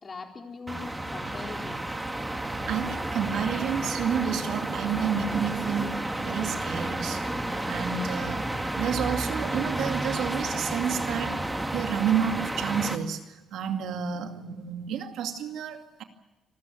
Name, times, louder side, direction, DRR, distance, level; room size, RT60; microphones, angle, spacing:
voice 1, 0.0-2.0, left 4 dB, 35° left, 2 dB, 4.1 m, -41 dB
sound 1, 0.7-13.0, right 1 dB, 10° right, 2.1 m, -31 dB
voice 2, 2.7-8.5 8.8-11.4 11.7-16.0, right 8 dB, 80° right, 5 dB, 2.4 m, -30 dB
26.0 x 14.0 x 9.3 m, 1.0 s
cardioid pair, 90°, 0 cm